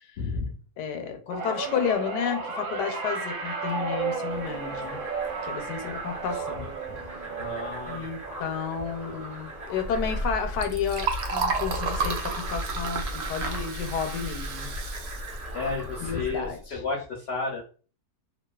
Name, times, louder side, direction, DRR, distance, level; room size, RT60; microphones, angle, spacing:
voice 1, 0.2-0.5 5.8-6.0 7.3-8.1 15.5-17.6, left 4 dB, 65° left, 0 dB, 0.6 m, -32 dB
voice 2, 0.8-5.0 5.4-6.7 7.9-14.7 16.0-16.8, left 7 dB, 90° left, 5 dB, 1.2 m, -31 dB
sound 1, 1.3-11.7 12.1-12.5 13.6-13.7, right 4 dB, 70° right, 1.0 m, -35 dB
sound 2, 4.3-16.4, right 1 dB, 30° right, 0.9 m, -43 dB
Liquid, 9.8-16.5, right 2 dB, 85° right, 0.6 m, -31 dB
2.7 x 2.3 x 2.2 m, 0.38 s
omnidirectional pair, 1.8 m